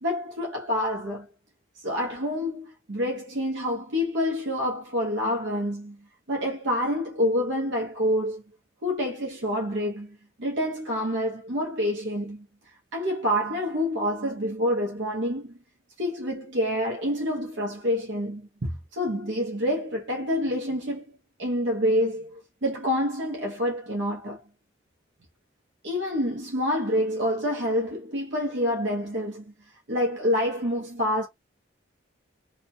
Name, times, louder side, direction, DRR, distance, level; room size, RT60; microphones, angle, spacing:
voice 1, 0.0-1.3 1.8-8.4 8.8-12.5 12.9-15.6 16.0-24.4 25.8-29.5 29.9-31.3, equal, 60° right, 0.8 m, -27 dB
2.9 x 2.2 x 2.7 m
head